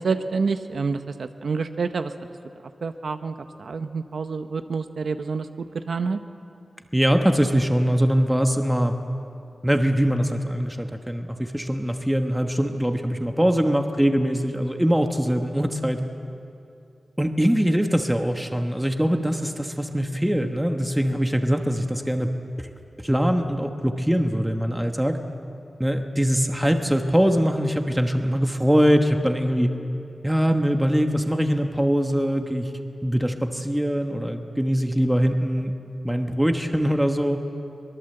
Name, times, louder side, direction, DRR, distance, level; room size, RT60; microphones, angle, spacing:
voice 1, 0.0-2.1 2.8-6.2, right 4 dB, 65° right, 8 dB, 0.8 m, -28 dB
voice 2, 6.9-8.9 9.6-16.0 17.2-22.3 22.6-22.7 23.0-25.2 25.8-29.7 30.2-32.7 33.0-35.7 36.0-37.4, equal, 5° right, 5 dB, 1.1 m, -22 dB
23.5 x 20.5 x 7.9 m, 2.6 s
wide cardioid pair, 155°, 0 cm